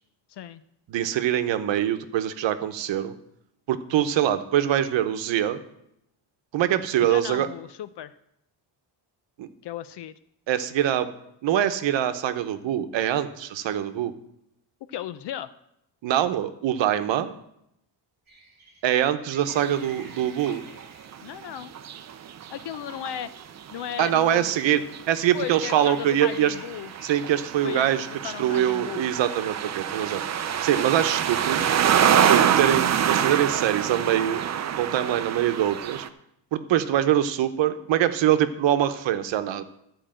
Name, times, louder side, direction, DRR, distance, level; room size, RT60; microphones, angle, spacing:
voice 1, 0.3-0.7 7.0-8.1 9.6-10.1 14.9-15.5 21.2-21.7 22.5-23.3 23.7-24.6 25.3-26.9 27.6-29.1, left 10 dB, 65° left, 14 dB, 0.7 m, -35 dB
voice 2, 0.9-3.1 3.7-5.6 6.5-7.5 9.4-9.5 10.5-11.1 11.4-14.1 16.0-17.3 18.8-20.6 24.0-24.8 25.1-26.5 27.0-30.2 30.6-31.7 32.3-34.4 34.8-36.0 36.5-39.6, right 11 dB, 90° right, 9 dB, 0.9 m, -24 dB
sound 1, 18.3-22.1 24.0-24.1 25.1-28.5 29.6-30.1 30.5-33.6, right 2 dB, 20° right, 2.2 m, -49 dB
sound 2, 19.5-19.8 20.1-20.9 21.1-36.1, right 9 dB, 40° right, 0.5 m, -26 dB
12.5 x 4.8 x 7.7 m, 0.80 s
wide cardioid pair, 170°, 44 cm